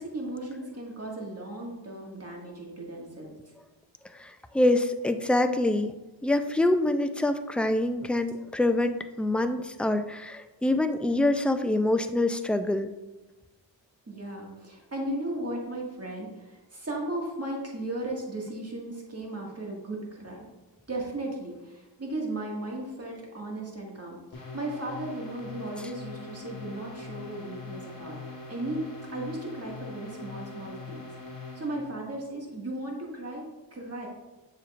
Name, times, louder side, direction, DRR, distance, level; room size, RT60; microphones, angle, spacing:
voice 1, 0.0-3.3 14.1-20.5 20.9-31.0 31.6-34.1, right 1 dB, 30° right, -1 dB, 2.0 m, -36 dB
voice 2, 4.2-5.9 6.2-12.9, left 1 dB, 5° left, 8 dB, 0.3 m, -25 dB
sound 1, 24.3-31.9, left 3 dB, 50° left, 1.6 m, -42 dB
7.4 x 6.5 x 2.5 m, 1.1 s
cardioid pair, 75°, 45 cm